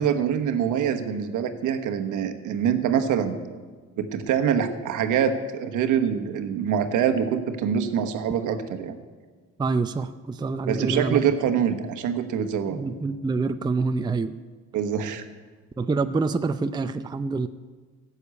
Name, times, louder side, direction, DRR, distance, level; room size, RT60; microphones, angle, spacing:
voice 1, 0.0-3.4 4.0-8.9 10.7-12.8 14.7-15.2, right 8 dB, 85° right, 6 dB, 1.2 m, -25 dB
voice 2, 9.6-11.2 12.7-14.3 15.8-17.5, right 4 dB, 15° right, 9 dB, 0.5 m, -26 dB
13.0 x 7.1 x 8.4 m, 1.4 s
cardioid pair, 90°, 30 cm